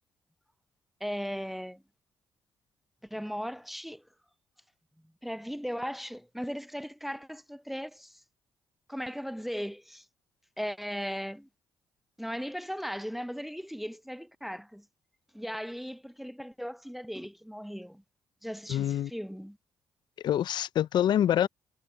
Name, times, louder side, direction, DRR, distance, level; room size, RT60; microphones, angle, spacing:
voice 1, 1.0-1.8 3.1-4.0 5.2-8.2 8.9-10.1 10.6-11.5 12.2-14.8 15.3-18.0 18.4-19.6, equal, ahead, 0.5 m, -37 dB
voice 2, 18.7-19.1 20.2-21.5, left 11 dB, 70° left, 0.5 m, -26 dB
supercardioid pair, 55°, 8 cm